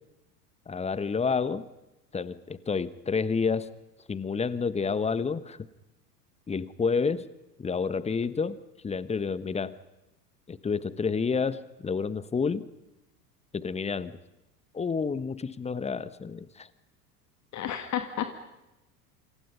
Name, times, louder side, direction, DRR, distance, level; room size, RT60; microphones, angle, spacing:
voice 1, 0.7-1.7 2.1-3.7 4.1-5.6 6.5-7.3 7.6-8.6 8.8-9.7 10.5-12.7 13.5-14.2 14.7-16.7, left 5 dB, 15° left, 17 dB, 1.2 m, -29 dB
voice 2, 17.5-18.4, left 10 dB, 35° left, 7 dB, 2.3 m, -32 dB
28.0 x 27.0 x 5.5 m, 0.95 s
figure-of-eight pair, 85°, 48 cm